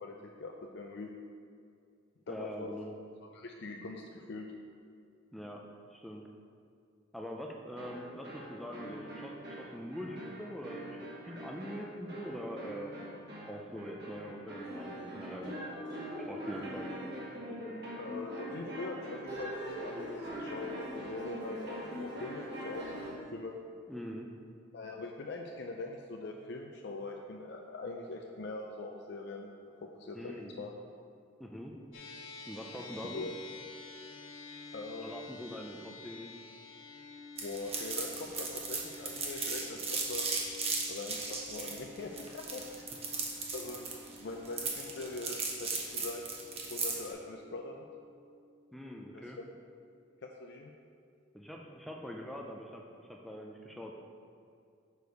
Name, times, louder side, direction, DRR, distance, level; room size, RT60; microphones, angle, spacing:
voice 1, 0.0-1.1 2.3-2.7 3.3-4.5 18.0-23.6 24.7-29.5 29.8-30.7 33.1-33.3 34.7-35.1 37.4-40.3 40.9-42.9 43.5-46.2 46.7-47.8 49.1-49.4 50.2-50.7, left 3 dB, 55° left, 1 dB, 0.5 m, -42 dB
voice 2, 2.3-2.9 5.3-5.6 5.9-6.2 7.1-12.9 13.5-15.6 16.3-17.0 23.9-24.3 30.1-30.5 31.4-31.7 32.5-33.3 35.0-36.4 48.7-49.4 51.3-54.0, equal, ahead, 0 dB, 0.4 m, -43 dB
sound 1, 7.8-23.2, equal, 55° right, 1.9 m, -43 dB
sound 2, 31.9-50.5, left 3 dB, 70° left, 1.6 m, -52 dB
sound 3, 37.4-47.1, right 4 dB, 30° right, 0.9 m, -36 dB
6.7 x 4.8 x 5.1 m, 2.4 s
head